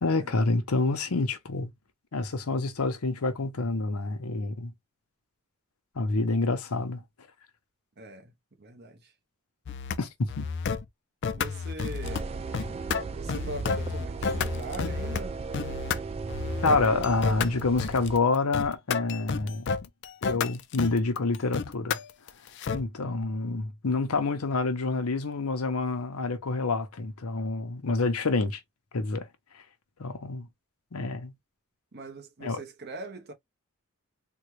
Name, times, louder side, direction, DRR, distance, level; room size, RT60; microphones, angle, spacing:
voice 1, 0.0-1.7 2.1-4.7 6.0-7.0 10.0-10.4 16.6-19.8 20.2-22.0 22.7-28.6 28.9-29.3 30.0-30.5 30.9-31.3 32.4-32.6, left 3 dB, 85° left, 0.8 m, -27 dB
voice 2, 8.0-9.1 11.3-12.5 13.1-15.4 31.9-33.3, right 2 dB, 45° right, 0.9 m, -41 dB
sound 1, 9.7-10.0 10.3-10.8 11.2-12.2 12.5-15.2 15.5-16.0 16.3-22.8, left 5 dB, 50° left, 0.4 m, -31 dB
sound 2, 12.0-18.2, right 4 dB, 25° right, 0.3 m, -36 dB
3.8 x 2.2 x 3.0 m
head